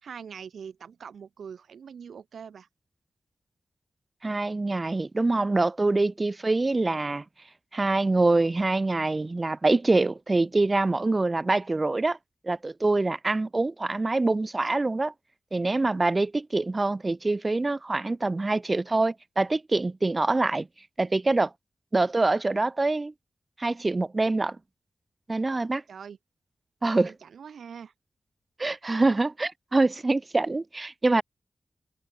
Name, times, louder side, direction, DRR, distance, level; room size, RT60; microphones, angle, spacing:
voice 1, 0.0-2.7 25.9-26.2 27.0-27.9, right 7 dB, 85° right, 3.8 m, -43 dB
voice 2, 4.2-7.2 7.7-12.2 12.4-15.1 15.5-20.7 21.0-21.5 21.9-23.1 23.6-24.6 25.3-25.8 26.8-27.1 28.6-31.2, right 2 dB, 35° right, 0.5 m, -25 dB
cardioid pair, 50°, 0 cm